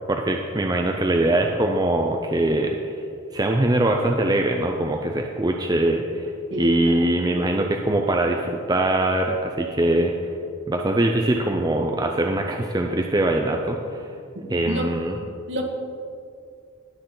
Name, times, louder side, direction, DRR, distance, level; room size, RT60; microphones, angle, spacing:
voice 1, 0.1-3.0 3.3-10.3 10.7-14.1 14.5-15.2, right 1 dB, 20° right, 2 dB, 0.5 m, -22 dB
voice 2, 6.5-7.0 14.7-14.9 15.5-15.6, equal, 60° right, 1 dB, 1.7 m, -27 dB
19.5 x 6.7 x 3.9 m, 2.4 s
head